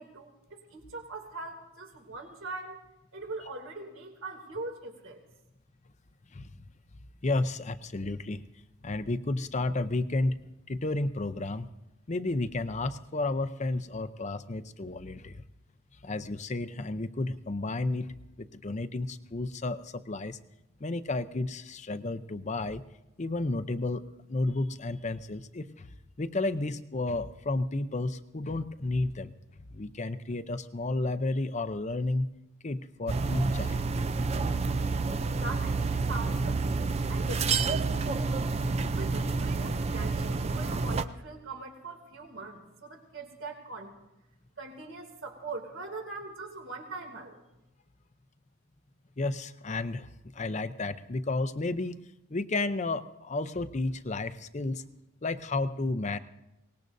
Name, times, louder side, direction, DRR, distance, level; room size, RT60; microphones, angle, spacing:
voice 1, 0.0-2.8 3.1-5.3 35.4-38.5 38.9-43.9 44.6-47.4, right 3 dB, 70° right, 2 dB, 2.7 m, -42 dB
voice 2, 7.2-8.4 8.8-10.4 10.7-11.7 12.1-15.4 16.0-20.4 20.8-22.8 23.2-24.0 24.3-25.9 26.2-29.3 29.7-32.3 32.6-33.8 49.2-52.0 52.3-54.8 55.2-56.2, left 2 dB, 35° left, 12 dB, 0.6 m, -32 dB
sound 1, 33.1-41.1, right 4 dB, 30° right, 0.4 m, -29 dB
23.5 x 19.0 x 2.7 m, 0.93 s
head